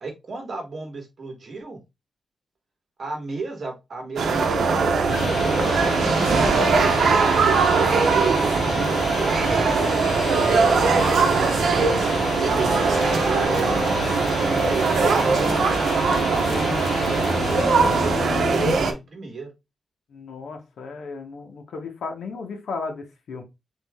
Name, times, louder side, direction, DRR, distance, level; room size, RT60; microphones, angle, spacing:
voice 1, 0.0-1.8 3.0-9.9 10.7-13.7 14.9-17.9 18.3-19.5, right 3 dB, 45° right, 1.5 m, -36 dB
sound 1, 4.2-18.9, right 4 dB, 85° right, 0.8 m, -20 dB
sound 2, 4.8-18.7, left 5 dB, 60° left, 0.6 m, -31 dB
voice 2, 20.1-23.4, left 4 dB, 90° left, 1.1 m, -35 dB
3.8 x 3.0 x 3.6 m
wide cardioid pair, 145°, 0 cm